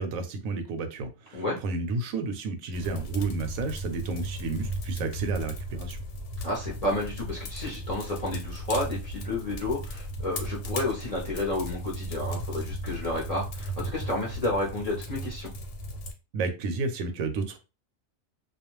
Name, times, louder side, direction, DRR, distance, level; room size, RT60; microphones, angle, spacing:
voice 1, 0.0-6.0 16.3-17.6, right 3 dB, 80° right, 1.0 m, -31 dB
sound 1, 2.7-16.1, right 1 dB, 90° left, 1.0 m, -36 dB
voice 2, 6.4-15.5, left 1 dB, 40° left, 0.5 m, -31 dB
2.3 x 2.2 x 2.9 m
omnidirectional pair, 1.4 m